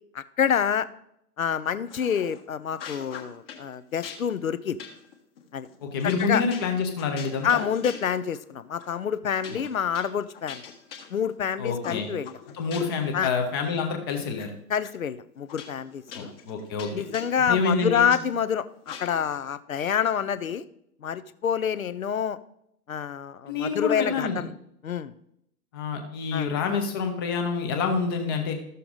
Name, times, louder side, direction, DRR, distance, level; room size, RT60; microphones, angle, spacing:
voice 1, 0.1-0.9 1.4-4.8 5.5-5.7 6.0-6.4 7.4-10.6 11.1-12.3 13.1-13.3 14.7-16.3 16.9-20.6 21.0-22.4 22.9-24.5 24.8-25.1 26.3-26.5, left 8 dB, 55° left, 14 dB, 0.7 m, -27 dB
sound 1, 1.9-2.4 2.7-3.7 4.0-8.5 8.8-9.0 9.3-11.4 11.8-13.1 13.5-14.5 14.8-14.9 15.5-18.2 18.8-19.4, left 7 dB, 35° left, 1.5 m, -43 dB
voice 2, 5.8-7.7 9.5-9.6 11.6-12.1 12.5-14.5 16.1-16.9 17.5-18.1 23.5-24.4 25.7-28.6, left 5 dB, 15° left, 5 dB, 0.7 m, -27 dB
13.5 x 6.8 x 3.8 m, 0.76 s
figure-of-eight pair, 125°, 49 cm